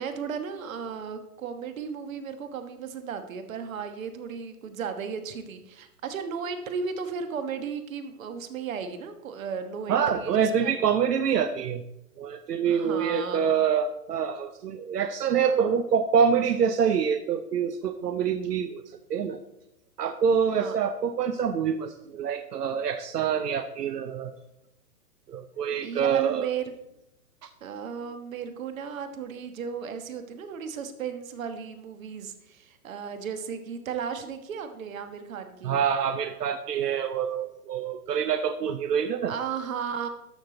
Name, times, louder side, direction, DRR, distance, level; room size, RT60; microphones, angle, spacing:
voice 1, 0.0-10.8 12.6-13.6 20.6-20.7 25.6-26.7 27.6-35.8 39.3-40.1, right 6 dB, 55° right, 8 dB, 1.4 m, -35 dB
voice 2, 9.9-11.8 12.2-19.4 20.0-24.3 25.3-26.5 27.4-27.5 35.6-39.3, right 7 dB, 85° right, 9 dB, 0.8 m, -26 dB
12.5 x 6.0 x 3.9 m, 0.86 s
hypercardioid pair, 145°, 47 cm